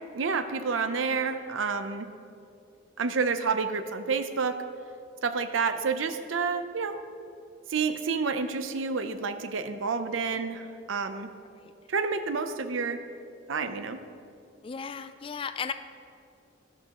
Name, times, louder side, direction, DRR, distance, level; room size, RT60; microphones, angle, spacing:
voice 1, 0.1-2.1 3.0-4.6 5.2-7.0 7.7-11.3 11.9-13.0 13.5-14.0, right 5 dB, 85° right, 9 dB, 0.6 m, -29 dB
voice 2, 14.6-15.7, left 6 dB, 25° left, 11 dB, 0.3 m, -35 dB
12.0 x 12.0 x 3.0 m, 2.5 s
head